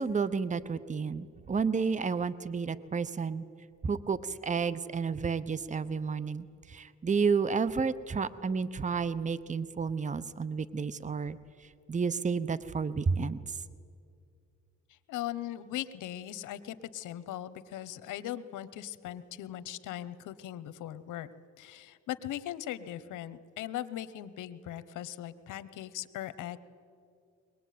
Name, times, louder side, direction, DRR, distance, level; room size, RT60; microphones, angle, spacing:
voice 1, 0.0-3.4 3.8-13.6, right 5 dB, 25° right, 16 dB, 0.8 m, -31 dB
voice 2, 14.9-21.3 21.6-26.6, left 12 dB, 85° left, 14 dB, 1.0 m, -39 dB
22.5 x 19.5 x 9.3 m, 2.4 s
cardioid pair, 90°, 30 cm